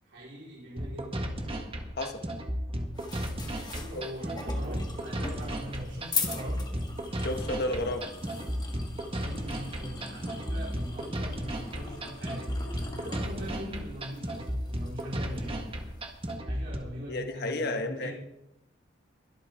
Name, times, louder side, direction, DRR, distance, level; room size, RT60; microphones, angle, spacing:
voice 1, 0.0-1.3 3.7-6.6 9.1-15.6 16.4-18.1, equal, 85° right, -6 dB, 4.6 m, -41 dB
sound 1, 0.8-16.8, equal, 30° right, 1.7 m, -34 dB
sound 2, 2.9-16.4, left 4 dB, 25° left, 1.7 m, -41 dB
voice 2, 7.2-8.1 17.1-18.1, left 2 dB, 60° left, 5 dB, 1.5 m, -31 dB
23.0 x 9.1 x 3.7 m, 0.87 s
head